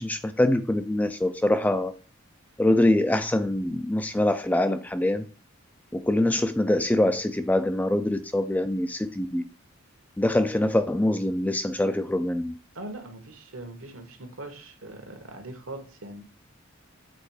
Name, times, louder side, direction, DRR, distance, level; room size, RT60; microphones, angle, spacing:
voice 1, 0.0-1.9 2.6-5.2 5.9-9.4 10.2-12.5, left 1 dB, 10° left, 0.3 m, -24 dB
voice 2, 12.7-16.2, right 2 dB, 75° right, 1.5 m, -41 dB
7.7 x 3.6 x 4.8 m
head